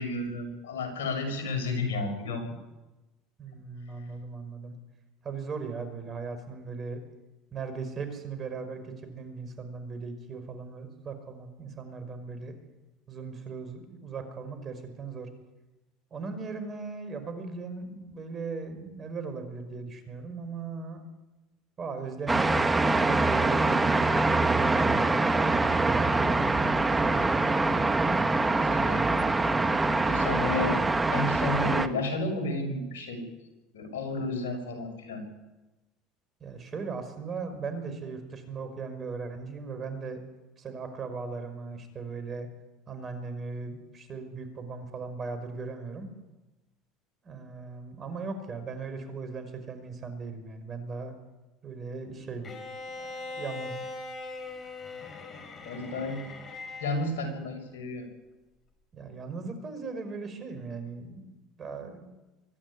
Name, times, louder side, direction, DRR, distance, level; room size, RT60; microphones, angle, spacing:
voice 1, 0.0-2.6 28.5-30.8 31.1-33.2 33.7-35.2 55.6-56.3 56.8-58.1, left 2 dB, 85° left, 4 dB, 6.5 m, -32 dB
voice 2, 3.4-4.7 5.2-7.0 7.5-12.6 13.1-15.3 16.1-21.1 21.8-27.2 36.4-40.2 40.6-42.5 42.9-46.1 47.2-51.1 51.6-52.6 53.0-53.9 58.9-62.1, right 4 dB, 35° right, 9 dB, 5.3 m, -38 dB
sound 1, 22.3-31.9, right 3 dB, 15° right, 1.6 m, -24 dB
Bowed string instrument, 52.4-57.1, left 3 dB, 35° left, 5.4 m, -40 dB
24.5 x 12.0 x 9.8 m, 1.1 s
hypercardioid pair, 85°, 0 cm